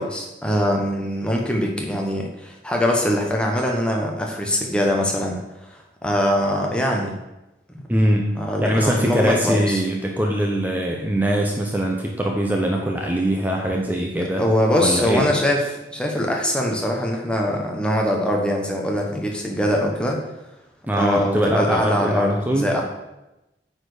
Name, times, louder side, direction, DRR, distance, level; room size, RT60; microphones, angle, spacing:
voice 1, 0.0-7.2 7.7-7.8 8.4-9.8 14.4-20.2 20.9-22.8, equal, 5° left, 0 dB, 1.1 m, -22 dB
voice 2, 7.9-14.4 14.8-15.3 20.9-22.7, equal, 10° right, 0 dB, 0.6 m, -22 dB
9.0 x 4.3 x 5.0 m, 0.96 s
head